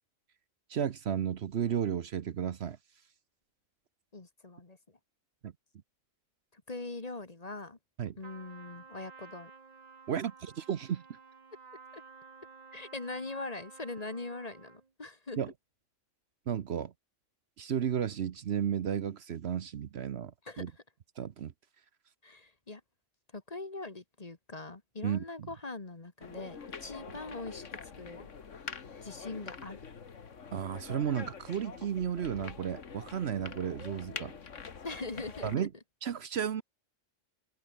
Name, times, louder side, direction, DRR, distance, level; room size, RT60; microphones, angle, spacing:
voice 1, 0.7-2.8 5.4-5.5 8.0-8.2 10.1-11.0 15.4-15.5 16.5-16.9 17.6-20.7 21.2-21.5 25.0-25.5 30.5-34.3 35.4-35.7 36.0-36.6, right 8 dB, 60° right, 1.0 m, -33 dB
voice 2, 4.1-5.0 6.5-7.8 8.2-9.5 11.9-12.0 12.7-15.4 20.4-20.6 22.2-22.8 23.3-28.3 29.0-29.8 34.8-35.7, left 3 dB, 30° left, 1.6 m, -42 dB
Trumpet, 8.2-14.9, right 5 dB, 35° right, 1.1 m, -53 dB
sound 1, 26.2-35.5, left 6 dB, 75° left, 2.0 m, -45 dB
omnidirectional pair, 1.3 m